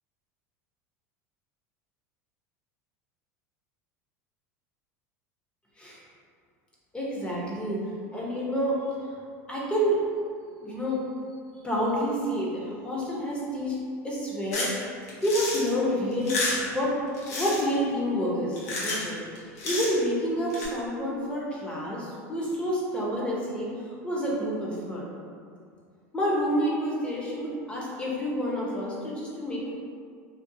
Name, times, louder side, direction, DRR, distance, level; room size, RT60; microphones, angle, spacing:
voice 1, 6.9-7.8 8.1-8.8 9.5-10.0 10.6-11.0 11.6-13.8 14.0-14.7 15.2-16.9 17.3-19.2 19.6-23.7 24.0-25.0 26.1-29.7, equal, 15° left, -5 dB, 0.7 m, -28 dB
sound 1, 14.5-14.7 15.1-15.7 16.1-16.7 17.2-17.6 18.5-19.1 19.3-20.0 20.5-20.7, left 2 dB, 80° left, 0.8 m, -30 dB
2.5 x 2.3 x 2.6 m, 2.2 s
supercardioid pair, 105°, 8 cm